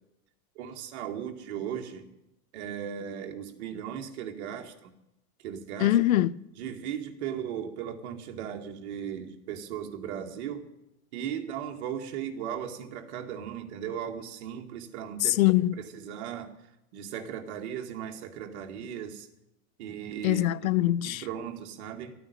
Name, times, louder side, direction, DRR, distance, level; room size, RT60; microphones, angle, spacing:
voice 1, 0.6-2.0 2.5-4.9 5.4-6.0 6.6-10.7 11.1-15.4 15.8-16.5 16.9-19.3 19.8-20.5 21.0-22.1, right 9 dB, 50° right, 2.1 m, -37 dB
voice 2, 5.8-6.4 15.2-15.8 20.2-21.3, left 15 dB, 70° left, 0.7 m, -23 dB
13.5 x 9.3 x 9.9 m
supercardioid pair, 165°, 43 cm